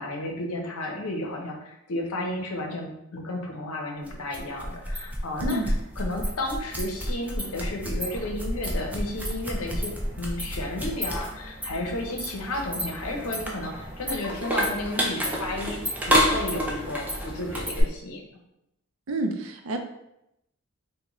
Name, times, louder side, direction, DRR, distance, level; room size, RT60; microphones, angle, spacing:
voice 1, 0.0-5.6 6.0-18.2, left 1 dB, 80° left, 2 dB, 0.6 m, -33 dB
sound 1, 4.1-17.8, equal, 5° right, 0.3 m, -30 dB
voice 2, 19.1-19.8, right 1 dB, 70° right, 5 dB, 0.4 m, -28 dB
3.8 x 2.1 x 2.9 m, 0.83 s
head